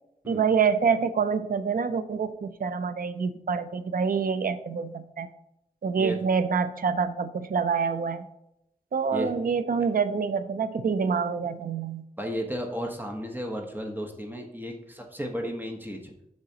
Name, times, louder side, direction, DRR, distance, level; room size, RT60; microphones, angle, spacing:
voice 1, 0.3-5.3 5.8-8.2 8.9-12.0, right 6 dB, 75° right, 11 dB, 0.5 m, -26 dB
voice 2, 12.2-16.1, equal, 15° right, 1 dB, 1.1 m, -34 dB
8.8 x 6.0 x 2.9 m, 0.83 s
wide cardioid pair, 75°, 15 cm